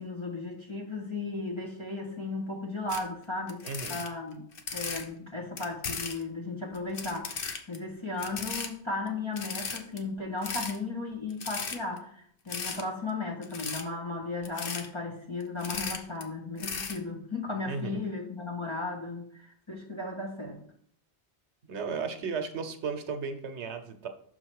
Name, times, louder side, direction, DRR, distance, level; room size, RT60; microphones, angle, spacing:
voice 1, 0.0-4.4 4.7-20.6, left 3 dB, 25° left, -1 dB, 1.6 m, -35 dB
sound 1, 2.9-3.0 3.5-5.0 5.6-6.2 6.7-7.8 8.2-8.7 9.1-9.2 9.4-10.0 10.4-10.8 11.3-12.0 12.5-12.8 13.4-13.8 14.4-14.9 15.4-16.2 16.6-17.0, left 5 dB, 55° left, 1.0 m, -36 dB
voice 2, 3.6-4.0 17.7-18.0 21.7-24.1, right 5 dB, 80° right, 7 dB, 1.1 m, -35 dB
6.3 x 4.6 x 4.6 m, 0.62 s
omnidirectional pair, 1.1 m